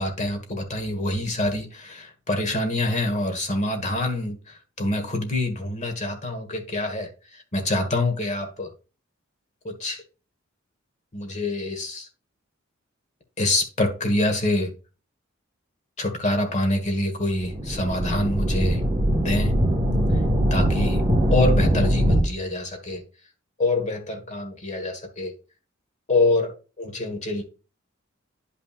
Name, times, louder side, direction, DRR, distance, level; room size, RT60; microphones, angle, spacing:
voice 1, 0.0-8.7 9.6-10.0 11.1-12.1 13.4-14.7 16.0-18.8 19.1-19.5 20.5-21.0 21.3-23.0 23.6-25.3 26.1-26.5 26.8-27.4, left 2 dB, 35° left, 4 dB, 1.5 m, -26 dB
sound 1, 17.4-22.2, equal, 20° right, 1.4 m, -21 dB
10.0 x 5.8 x 2.5 m, 0.34 s
head